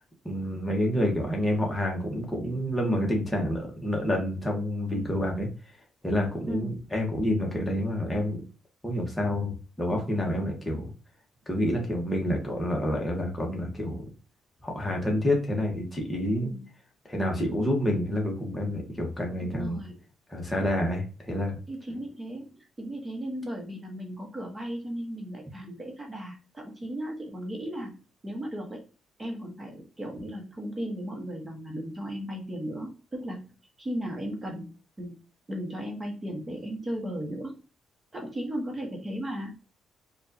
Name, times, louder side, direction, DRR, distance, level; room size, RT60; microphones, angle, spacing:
voice 1, 0.2-5.5 6.0-8.4 8.8-10.9 11.5-14.0 14.6-16.5 17.1-19.8 20.3-21.6, left 1 dB, 10° left, -1 dB, 1.4 m, -28 dB
voice 2, 6.5-6.8 16.4-16.7 19.4-20.0 21.7-28.8 29.2-33.5 33.8-34.7 35.0-35.1 35.5-37.5 38.1-39.5, equal, 25° right, 1 dB, 1.2 m, -36 dB
4.5 x 2.6 x 2.8 m, 0.35 s
cardioid pair, 90°, 0 cm